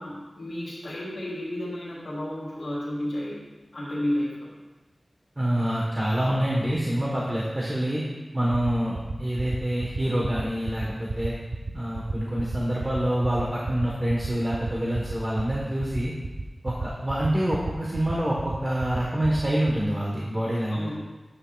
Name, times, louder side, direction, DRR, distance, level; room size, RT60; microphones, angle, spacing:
voice 1, 0.0-3.4 3.7-4.5 20.7-20.9, left 1 dB, 80° left, -7 dB, 2.9 m, -32 dB
voice 2, 5.4-8.0 8.3-11.4 11.7-16.1 16.6-20.9, right 1 dB, 25° right, -4 dB, 1.2 m, -26 dB
sound 1, 8.5-19.8, right 3 dB, 70° right, 0.6 m, -31 dB
10.0 x 8.6 x 2.4 m, 1.2 s
wide cardioid pair, 85°, 0 cm